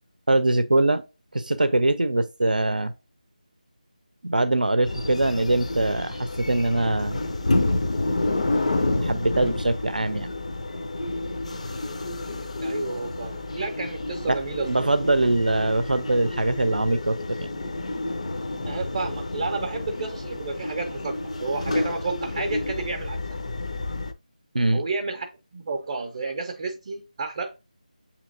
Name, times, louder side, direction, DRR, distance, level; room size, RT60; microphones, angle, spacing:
voice 1, 0.3-1.0 1.3-2.9 4.2-7.2 9.0-10.3 14.3-14.4 14.7-17.4 24.5-24.8, right 2 dB, 85° right, 0.5 m, -22 dB
sound 1, 4.8-24.1, left 2 dB, 55° left, 0.5 m, -29 dB
voice 2, 12.6-14.9 18.7-23.4 24.7-27.5, right 3 dB, 30° right, 0.5 m, -31 dB
6.8 x 2.8 x 2.5 m
figure-of-eight pair, 165°, 4 cm